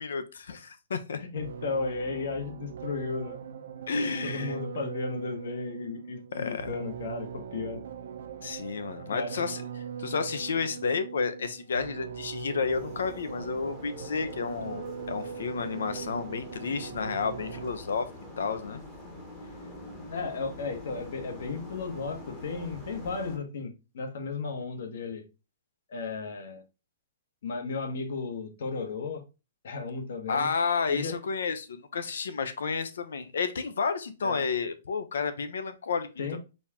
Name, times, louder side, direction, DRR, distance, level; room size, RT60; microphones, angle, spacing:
voice 1, 0.0-1.2 3.9-4.6 6.3-6.7 8.4-18.1 18.4-18.8 30.3-36.4, left 5 dB, 85° left, 0.7 m, -31 dB
voice 2, 1.2-3.4 4.2-7.8 9.1-9.3 20.1-25.2 25.9-26.6 27.4-29.2 29.6-30.5 30.9-31.2 34.2-34.4 36.2-36.4, left 4 dB, 60° left, 1.1 m, -34 dB
sound 1, 1.4-18.0, right 7 dB, 70° right, 0.7 m, -41 dB
sound 2, 12.7-23.4, left 1 dB, 10° left, 0.9 m, -45 dB
4.2 x 2.9 x 3.5 m
hypercardioid pair, 175°, 0 cm